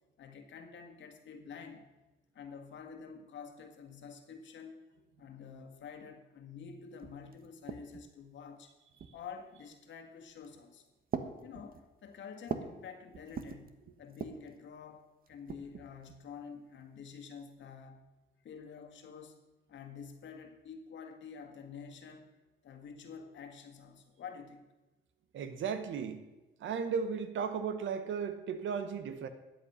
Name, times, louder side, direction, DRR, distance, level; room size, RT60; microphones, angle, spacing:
voice 1, 0.2-1.9 2.3-4.8 5.2-8.7 9.1-10.9 11.4-18.1 18.4-19.4 19.7-22.4 22.6-24.7, left 6 dB, 70° left, 5 dB, 1.8 m, -49 dB
sound 1, 6.7-6.8 7.0-8.2 9.0-9.5 10.3-10.6 11.1-12.8 13.1-13.7 14.1-14.5 15.3-16.2, right 6 dB, 45° right, 1.1 m, -42 dB
voice 2, 25.3-26.2 26.6-29.3, right 6 dB, 75° right, 10 dB, 1.2 m, -35 dB
13.5 x 9.0 x 5.6 m, 1.1 s
cardioid pair, 90°, 20 cm